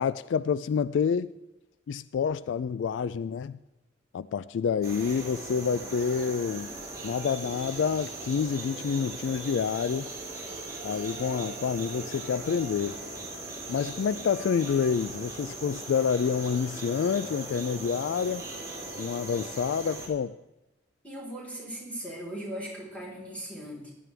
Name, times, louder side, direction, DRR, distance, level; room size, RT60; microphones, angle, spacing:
voice 1, 0.0-1.3 1.9-3.6 4.1-6.7 7.0-10.1 10.8-13.0 13.7-18.4 19.0-20.4, left 6 dB, 75° left, 0.3 m, -28 dB
sound 1, 4.8-20.1, right 2 dB, 20° right, 3.3 m, -39 dB
voice 2, 21.0-23.9, right 1 dB, 5° left, 4.1 m, -38 dB
16.5 x 11.0 x 3.4 m
head